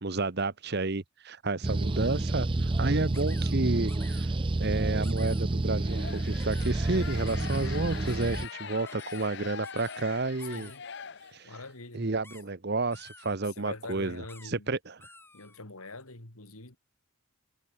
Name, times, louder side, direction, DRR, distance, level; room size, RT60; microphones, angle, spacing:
voice 1, 0.0-4.3 4.6-10.7 11.3-11.5 11.9-14.2 14.5-15.0, right 3 dB, 50° right, 1.0 m, -31 dB
sound 1, 1.6-8.5, right 2 dB, 25° right, 0.5 m, -29 dB
sound 2, 3.1-3.5 3.9-4.3 5.0-5.4 6.4-6.7 7.3-7.7 8.1-8.5 8.9-9.3 9.6-10.0 10.4-10.8 12.2-12.4 12.9-13.4 14.3-14.5 15.0-15.6, left 3 dB, 10° left, 4.3 m, -51 dB
sound 3, 5.8-11.7, left 6 dB, 55° left, 0.9 m, -43 dB
voice 2, 10.5-10.8 11.4-12.1 13.4-14.7 15.3-16.8, left 2 dB, 85° left, 3.9 m, -44 dB
head